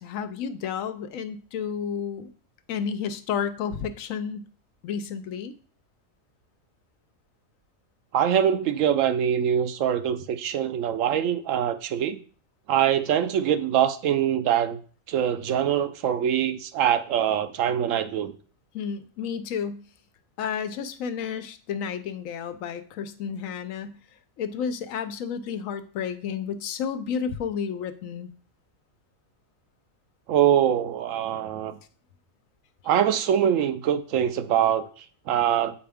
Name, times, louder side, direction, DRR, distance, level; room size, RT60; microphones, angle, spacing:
voice 1, 0.0-2.3 2.7-4.5 4.8-5.5 18.7-19.8 20.4-24.0 24.4-28.3, left 7 dB, 75° left, 11 dB, 1.0 m, -31 dB
voice 2, 8.1-12.2 12.7-14.8 15.1-18.3 30.3-31.8 32.8-35.8, right 9 dB, 70° right, 10 dB, 0.9 m, -24 dB
7.6 x 4.9 x 3.5 m, 0.42 s
omnidirectional pair, 1.4 m